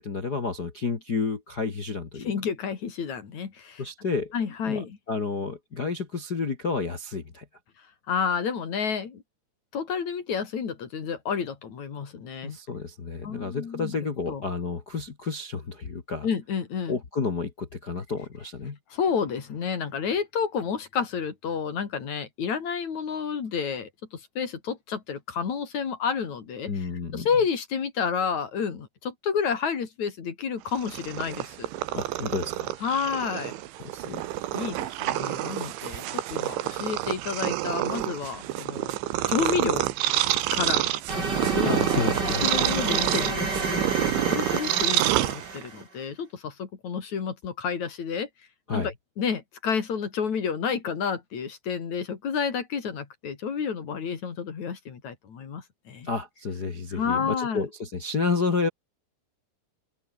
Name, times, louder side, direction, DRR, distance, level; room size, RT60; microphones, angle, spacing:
voice 1, 0.0-2.3 3.8-4.3 4.6-7.4 12.4-16.2 16.9-18.8 26.7-27.3 31.9-32.8 33.8-34.2 41.6-42.4 48.7-48.9 56.0-58.7, left 4 dB, 75° left, 0.9 m, -30 dB
voice 2, 2.2-3.8 4.3-5.0 8.1-9.2 9.7-12.6 13.2-14.5 16.2-17.0 18.9-31.7 32.8-33.5 34.5-39.0 39.3-39.9 40.5-40.8 41.4-48.3 48.7-56.1 56.9-57.7, left 6 dB, 45° left, 3.7 m, -30 dB
Purr, 30.7-45.8, right 15 dB, 80° right, 3.7 m, -28 dB
sound 1, 41.1-45.8, right 3 dB, 20° right, 5.0 m, -30 dB
open air
omnidirectional pair, 5.3 m